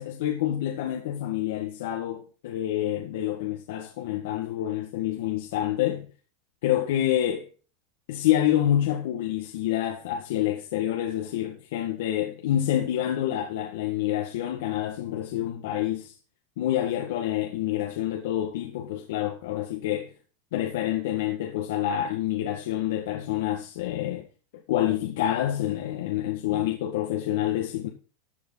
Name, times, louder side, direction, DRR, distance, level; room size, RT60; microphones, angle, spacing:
voice 1, 0.0-6.1 6.6-7.5 8.1-16.1 16.6-20.1 20.5-24.3 24.7-27.9, left 12 dB, 65° left, 1.7 m, -27 dB
13.5 x 8.5 x 4.0 m
supercardioid pair, 180°, 0 cm